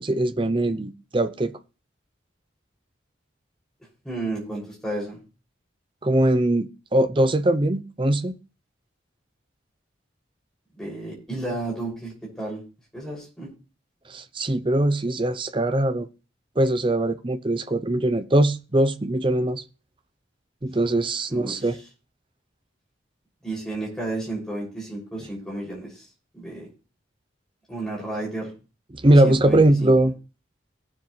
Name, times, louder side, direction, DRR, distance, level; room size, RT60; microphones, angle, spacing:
voice 1, 0.0-1.5 6.0-8.4 14.1-16.1 16.6-19.6 20.6-21.8 28.9-30.1, right 1 dB, 25° right, 0.6 m, -21 dB
voice 2, 4.0-5.2 10.7-12.6 12.9-13.5 21.3-21.7 23.4-26.0 26.3-26.7 27.7-28.5 29.2-29.9, right 2 dB, 5° left, 6.4 m, -32 dB
18.0 x 7.3 x 3.3 m
head